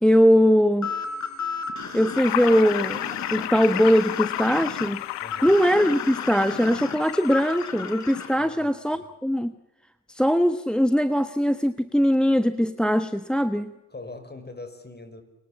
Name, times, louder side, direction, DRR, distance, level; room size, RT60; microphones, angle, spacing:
voice 1, 0.0-0.9 1.9-5.0 5.4-9.6 10.1-13.7, equal, ahead, 11 dB, 1.3 m, -21 dB
sound 1, 0.8-8.3, left 5 dB, 40° left, 5.3 m, -34 dB
sound 2, 2.1-8.5, left 19 dB, 70° left, 1.1 m, -33 dB
voice 2, 5.2-5.6 8.4-9.1 13.9-15.2, left 3 dB, 20° left, 10 dB, 5.6 m, -42 dB
29.0 x 23.5 x 7.4 m, 1.0 s
hypercardioid pair, 55°, 43 cm